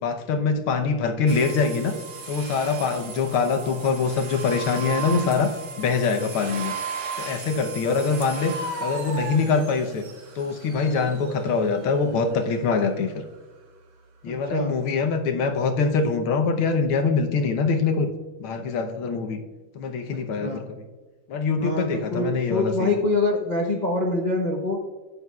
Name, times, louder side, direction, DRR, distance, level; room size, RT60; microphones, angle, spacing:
voice 1, 0.0-2.0 2.3-6.7 7.2-8.5 8.8-10.0 10.4-13.1 14.2-18.1 18.4-19.4 19.7-20.8 21.3-23.0, left 4 dB, 75° left, 6 dB, 1.8 m, -24 dB
sound 1, 1.3-13.0, right 4 dB, 55° right, 1.7 m, -36 dB
voice 2, 14.3-14.7 20.4-20.7 21.6-24.8, left 2 dB, 50° left, 0 dB, 0.5 m, -25 dB
12.0 x 9.3 x 2.3 m, 1.3 s
omnidirectional pair, 2.4 m